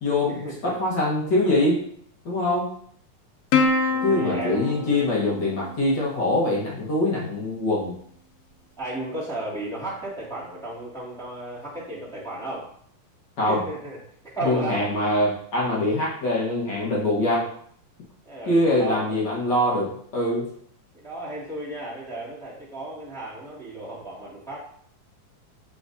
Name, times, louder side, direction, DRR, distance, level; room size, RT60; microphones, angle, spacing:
voice 1, 0.0-1.8 2.2-2.7 4.0-8.0 13.4-13.6 14.4-17.4 18.5-20.5, left 1 dB, 60° left, -5 dB, 1.1 m, -23 dB
Plucked string instrument, 3.5-6.3, left 4 dB, 80° left, 1.6 m, -26 dB
voice 2, 3.9-5.0 8.8-12.7 13.5-14.0 14.2-14.9 18.2-19.2 20.9-24.6, right 2 dB, ahead, -8 dB, 1.0 m, -34 dB
7.7 x 5.0 x 2.7 m, 0.63 s
omnidirectional pair, 3.9 m